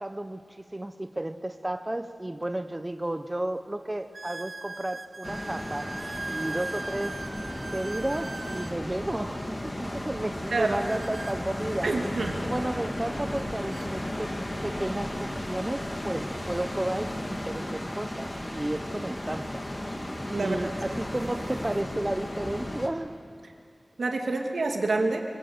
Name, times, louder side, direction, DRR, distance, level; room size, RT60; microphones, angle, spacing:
voice 1, 0.0-5.9 6.3-7.2 7.7-11.9 12.4-19.7 20.4-23.1, right 1 dB, 20° right, 9 dB, 0.8 m, -33 dB
sound 1, 2.4-2.5 3.2-3.3 4.1-8.8 10.7-12.4 13.4-13.5 13.7-13.9 14.7-14.8 17.0-17.1 19.2-19.3 20.0-20.3 20.9-21.8, right 3 dB, 50° right, 0.8 m, -40 dB
sound 2, 5.2-22.9, left 1 dB, 25° left, 2.5 m, -34 dB
voice 2, 11.8-12.3 20.3-20.7 24.0-25.2, right 3 dB, 85° right, 2 dB, 2.4 m, -27 dB
25.0 x 22.0 x 8.0 m, 2.3 s
wide cardioid pair, 80°, 0 cm